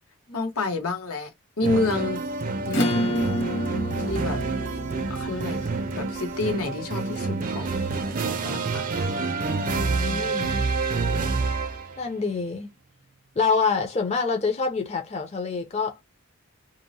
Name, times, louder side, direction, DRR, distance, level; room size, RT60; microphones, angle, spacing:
voice 1, 0.3-1.3 1.6-2.2 2.7-3.3 4.1-4.4 5.1-5.6 6.0-7.7 8.2-8.8 10.1-10.4, left 2 dB, 85° left, 0.9 m, -29 dB
sound 1, 1.6-12.0, right 3 dB, 40° right, 0.4 m, -28 dB
Acoustic guitar / Strum, 2.7-7.6, equal, 60° left, 1.2 m, -30 dB
voice 2, 9.6-10.5 12.0-12.7 13.4-16.0, left 4 dB, 30° left, 0.5 m, -26 dB
2.7 x 2.0 x 2.6 m
head